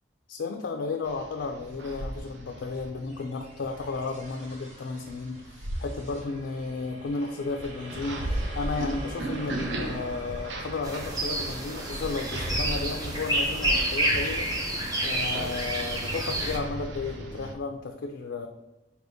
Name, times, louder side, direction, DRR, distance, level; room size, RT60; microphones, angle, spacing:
voice 1, 0.3-14.5 15.0-18.5, left 4 dB, 70° left, 4 dB, 0.4 m, -33 dB
sound 1, 1.0-17.5, right 1 dB, 75° right, 0.6 m, -37 dB
sound 2, 3.0-15.7, equal, 40° right, 1.0 m, -46 dB
sound 3, 10.8-16.6, right 1 dB, 20° right, 0.7 m, -29 dB
4.2 x 3.5 x 2.7 m, 1.0 s
head